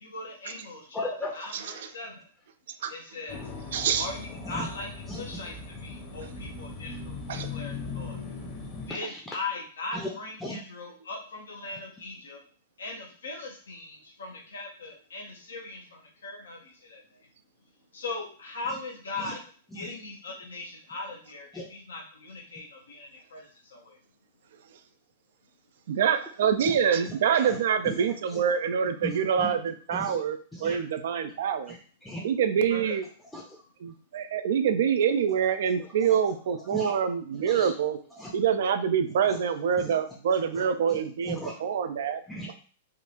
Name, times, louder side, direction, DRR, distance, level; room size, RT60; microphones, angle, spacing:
voice 1, 0.0-1.1 1.3-1.5 1.9-2.3 2.9-3.4 4.0-4.9 5.2-5.5 5.8-7.2 7.5-8.2 8.9-12.4 12.8-17.0 17.9-19.4 19.7-24.0 32.7-33.0, left 3 dB, 75° left, 0 dB, 0.7 m, -39 dB
voice 2, 0.9-1.6 1.9-2.0 4.4-4.7 5.1-5.4 8.9-9.4 9.9-10.1 10.4-10.6 18.6-18.8 19.2-19.4 19.7-19.9 21.5-21.7 26.6-26.8 27.1-28.4 29.0-29.5 29.9-30.2 30.5-30.8 31.7-32.3 33.3-33.6 35.8-36.4 36.6-36.9 37.3-37.7 38.1-38.3 39.2-39.4 39.8-40.0 40.3-41.5 42.3-42.6, left 1 dB, 10° left, -2 dB, 0.6 m, -39 dB
sound 1, 3.3-8.9, left 4 dB, 35° left, 0.9 m, -39 dB
voice 3, 3.7-4.1 7.3-7.5 25.9-29.6 29.9-31.7 32.2-33.0 33.8-38.0 38.3-42.2, right 7 dB, 65° right, 9 dB, 0.3 m, -26 dB
3.6 x 2.4 x 2.8 m, 0.42 s
figure-of-eight pair, 105°, 0 cm